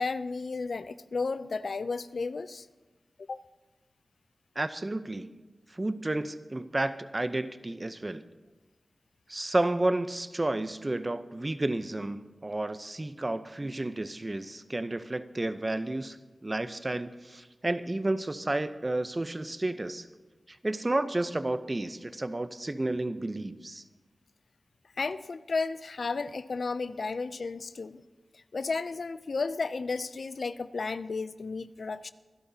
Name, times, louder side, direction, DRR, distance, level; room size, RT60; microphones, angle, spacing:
voice 1, 0.0-2.7 3.2-3.4 25.0-28.0 28.3-32.1, left 4 dB, 75° left, 14 dB, 0.4 m, -33 dB
voice 2, 4.6-5.3 5.7-8.2 9.3-16.2 16.4-20.1 20.5-23.8, right 2 dB, 35° right, 11 dB, 0.7 m, -31 dB
24.5 x 12.0 x 2.8 m, 1.2 s
cardioid pair, 45°, 0 cm